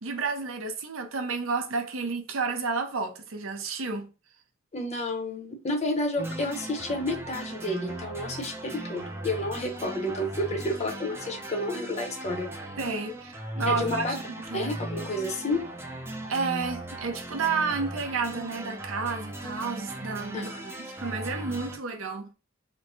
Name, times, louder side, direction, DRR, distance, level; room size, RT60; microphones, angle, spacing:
voice 1, 0.0-4.1 12.8-14.2 14.5-14.7 16.3-20.5 21.0-22.3, right 4 dB, 80° right, 0.7 m, -31 dB
voice 2, 4.7-12.5 13.7-14.2 14.5-15.6 20.3-20.7, left 1 dB, 35° left, 0.7 m, -30 dB
sound 1, 6.2-21.8, right 1 dB, 10° right, 0.4 m, -38 dB
3.2 x 2.1 x 3.9 m
head